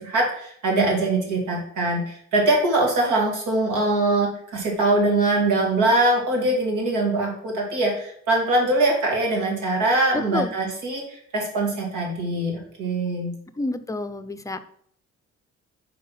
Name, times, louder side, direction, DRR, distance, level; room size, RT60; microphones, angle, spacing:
voice 1, 0.0-13.3, right 2 dB, 85° right, -1 dB, 2.4 m, -22 dB
voice 2, 10.1-10.5 13.6-14.6, left 2 dB, 10° left, 10 dB, 0.5 m, -29 dB
5.4 x 4.3 x 5.6 m, 0.63 s
cardioid pair, 90°, 30 cm